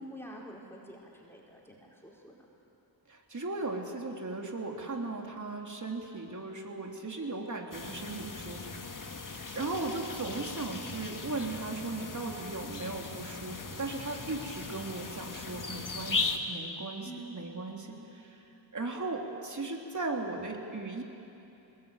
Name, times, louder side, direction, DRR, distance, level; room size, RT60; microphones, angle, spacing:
voice 1, 0.0-2.4 10.7-10.9 17.0-17.4 17.9-18.0, right 1 dB, 5° left, -3 dB, 4.6 m, -47 dB
voice 2, 3.1-9.3 9.5-17.9 18.7-21.0, right 3 dB, 40° right, 1 dB, 3.2 m, -37 dB
sound 1, 7.7-16.4, left 4 dB, 40° left, 1.9 m, -38 dB
21.5 x 20.5 x 9.1 m, 2.9 s
cardioid pair, 60°, 48 cm